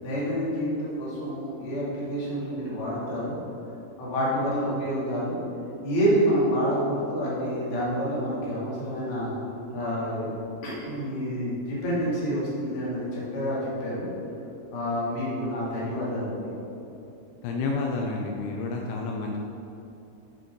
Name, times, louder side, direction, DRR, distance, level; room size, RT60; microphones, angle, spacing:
voice 1, 0.0-3.4 4.0-5.4 5.8-9.3 9.7-10.3 10.6-14.1 14.7-16.5, equal, 40° left, -7 dB, 2.5 m, -28 dB
voice 2, 17.4-19.4, left 3 dB, 80° left, 0 dB, 2.6 m, -29 dB
8.7 x 6.7 x 4.6 m, 2.9 s
omnidirectional pair, 4.8 m